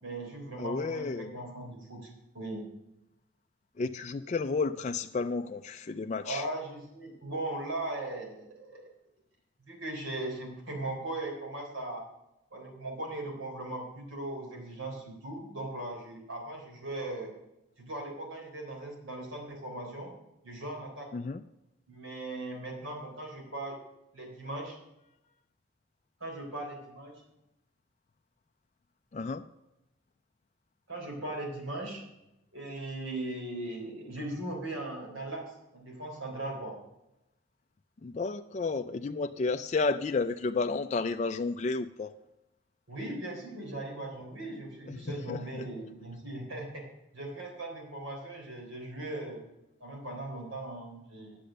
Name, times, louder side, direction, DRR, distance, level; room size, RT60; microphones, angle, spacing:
voice 1, 0.0-2.6 6.2-8.9 9.6-12.1 12.5-17.3 17.8-20.1 20.4-21.1 21.9-23.8 24.1-24.8 26.2-27.1 30.9-32.0 32.5-36.8 42.9-46.8 47.1-49.4 49.8-51.4, right 2 dB, 75° right, 3.6 m, -38 dB
voice 2, 0.6-1.3 3.8-6.5 21.1-21.4 29.1-29.4 38.0-42.1 44.9-45.6, left 4 dB, 35° left, 0.3 m, -32 dB
10.5 x 7.7 x 6.5 m
head